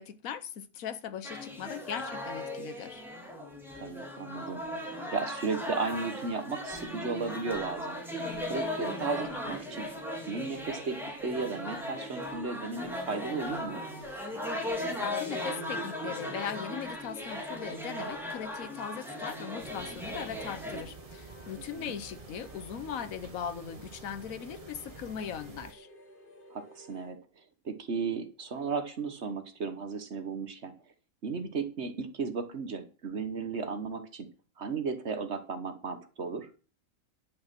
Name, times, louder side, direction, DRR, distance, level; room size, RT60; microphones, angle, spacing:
voice 1, 0.0-3.1 15.0-25.9, left 8 dB, 65° left, 1.3 m, -39 dB
sound 1, 1.2-20.8, left 1 dB, ahead, 2.8 m, -37 dB
voice 2, 3.8-8.0 8.5-9.9 10.3-13.8 21.6-21.9 26.5-27.2 27.6-30.7 31.2-34.3 34.6-36.5, right 4 dB, 50° right, 1.4 m, -35 dB
sound 2, 13.0-27.2, left 1 dB, 35° left, 1.5 m, -54 dB
sound 3, 19.6-25.7, right 4 dB, 30° right, 0.9 m, -50 dB
10.5 x 6.0 x 6.0 m
omnidirectional pair, 1.6 m